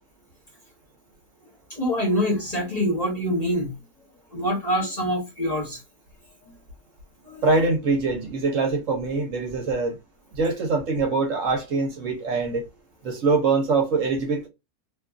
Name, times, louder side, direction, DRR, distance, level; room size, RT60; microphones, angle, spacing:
voice 1, 1.7-3.7 4.3-5.8 7.2-7.4, equal, 30° left, 1.1 m, -25 dB
voice 2, 7.4-10.0 10.3-12.6 13.0-14.5, right 3 dB, 60° right, 1.0 m, -23 dB
2.9 x 2.4 x 2.3 m
omnidirectional pair, 1.6 m